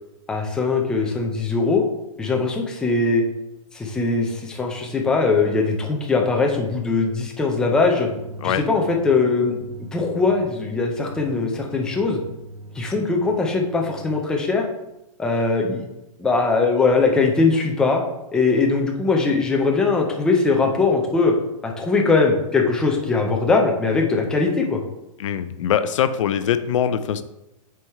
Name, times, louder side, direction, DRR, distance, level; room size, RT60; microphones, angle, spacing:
voice 1, 0.3-1.8 2.2-3.2 3.7-8.1 8.4-9.6 9.9-12.2 12.7-14.6 15.2-15.8 16.2-18.0 18.3-21.3 21.6-24.8, left 4 dB, 5° left, 1 dB, 0.4 m, -20 dB
sound 1, 8.1-14.1, right 3 dB, 85° right, 1.0 m, -41 dB
voice 2, 25.2-27.2, left 9 dB, 60° left, 12 dB, 0.4 m, -22 dB
6.0 x 4.6 x 3.4 m, 0.92 s
hypercardioid pair, 155°, 18 cm